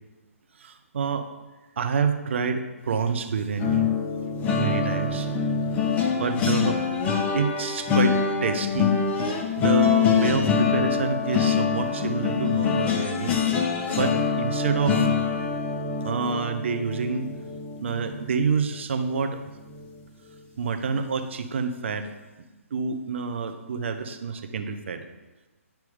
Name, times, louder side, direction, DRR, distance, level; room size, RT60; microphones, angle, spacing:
voice 1, 0.6-1.3 1.8-5.4 6.2-6.8 7.3-9.0 9.6-13.4 14.0-15.3 16.0-17.3 17.8-19.4 20.6-25.0, right 5 dB, 55° right, 7 dB, 0.7 m, -28 dB
sound 1, 3.6-18.7 19.1-19.4 19.7-19.9, left 6 dB, 15° left, 0.7 m, -25 dB
10.0 x 4.5 x 3.6 m, 1.2 s
figure-of-eight pair, 135°, 8 cm